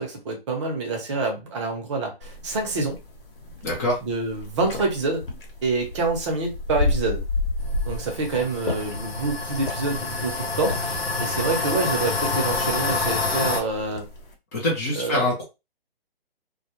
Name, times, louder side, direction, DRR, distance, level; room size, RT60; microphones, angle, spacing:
voice 1, 0.0-3.0 4.1-5.2 5.6-7.2 7.9-14.1 15.0-15.2, right 3 dB, 30° right, 0.7 m, -27 dB
sound 1, 2.2-14.3, left 2 dB, 65° left, 1.1 m, -32 dB
voice 2, 3.6-4.0 14.5-15.4, left 1 dB, 15° left, 0.5 m, -24 dB
sound 2, 7.6-13.6, left 3 dB, 90° left, 0.7 m, -27 dB
2.2 x 2.1 x 2.9 m
figure-of-eight pair, 135°, 30 cm